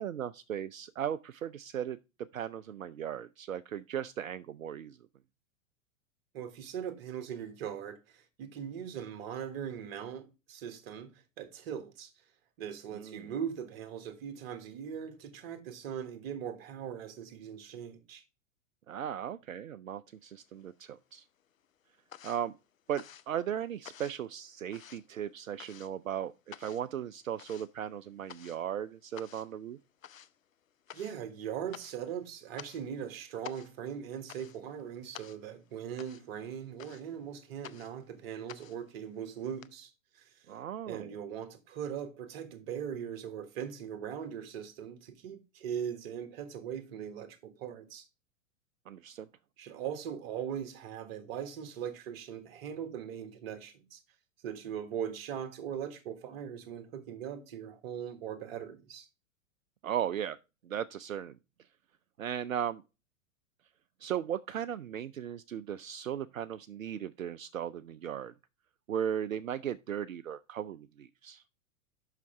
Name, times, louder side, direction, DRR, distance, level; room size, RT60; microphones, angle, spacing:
voice 1, 0.0-2.0 2.3-5.0 12.9-13.3 18.9-21.2 22.2-22.5 22.9-29.8 40.5-41.1 48.9-49.3 59.8-60.4 60.6-61.4 62.2-62.8 64.0-68.3 68.9-71.4, right 9 dB, 80° right, 0.5 m, -37 dB
voice 2, 6.3-12.1 12.6-18.2 30.9-40.3 40.9-48.1 49.6-54.0 54.4-59.1, right 8 dB, 45° right, 1.5 m, -40 dB
sound 1, 20.3-21.1 21.4-39.7, left 9 dB, 80° left, 0.6 m, -52 dB
8.1 x 5.8 x 3.4 m
figure-of-eight pair, 100°, 40 cm